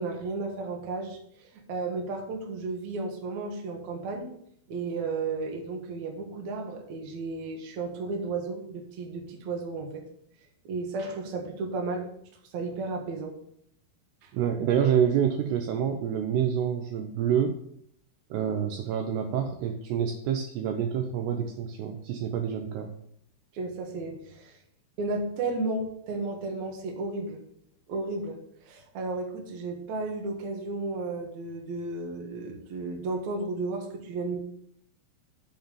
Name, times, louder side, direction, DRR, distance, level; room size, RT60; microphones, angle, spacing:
voice 1, 0.0-4.3 4.7-10.1 10.6-12.1 12.5-13.4 14.2-14.3 23.5-24.6 25.0-27.4 27.9-28.4 28.6-34.4, right 3 dB, 60° right, 1 dB, 1.9 m, -33 dB
voice 2, 14.3-17.6 18.3-22.9, right 8 dB, 85° right, 5 dB, 2.4 m, -27 dB
6.9 x 5.8 x 6.9 m, 0.69 s
omnidirectional pair, 5.7 m